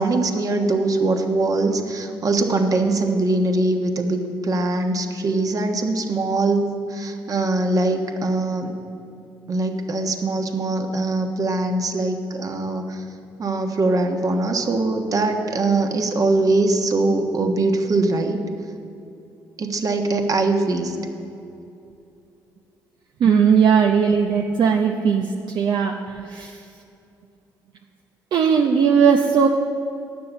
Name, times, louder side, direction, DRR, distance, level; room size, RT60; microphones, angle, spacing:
voice 1, 0.0-8.7 9.5-13.0 13.4-18.4 19.6-21.0, right 2 dB, 45° right, 4 dB, 1.3 m, -22 dB
voice 2, 23.2-26.6 28.3-29.5, right 6 dB, 60° right, 2 dB, 0.7 m, -18 dB
9.9 x 6.8 x 6.7 m, 2.7 s
supercardioid pair, 55°, 9 cm